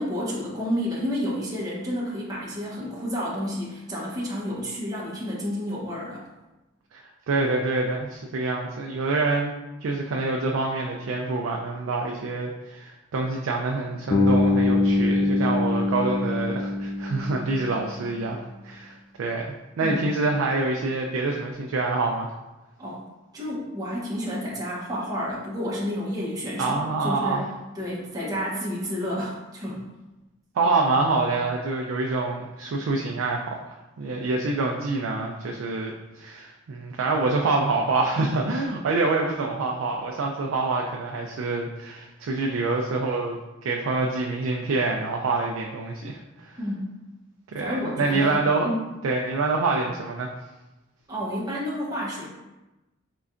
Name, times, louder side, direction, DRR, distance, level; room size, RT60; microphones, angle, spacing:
voice 1, 0.0-6.2 19.8-20.0 22.8-23.0 23.3-27.5 27.7-29.8 46.6-46.9 47.6-48.8 51.1-52.2, equal, 20° right, -7 dB, 0.9 m, -30 dB
voice 2, 7.3-9.6 9.8-22.3 26.6-27.4 30.6-33.6 34.0-43.4 43.6-46.6 47.5-48.7 49.0-50.3, right 3 dB, 80° right, 1 dB, 0.4 m, -26 dB
Bass guitar, 14.1-18.1, left 2 dB, 25° left, 0.3 m, -23 dB
3.9 x 3.2 x 2.4 m, 1.0 s
head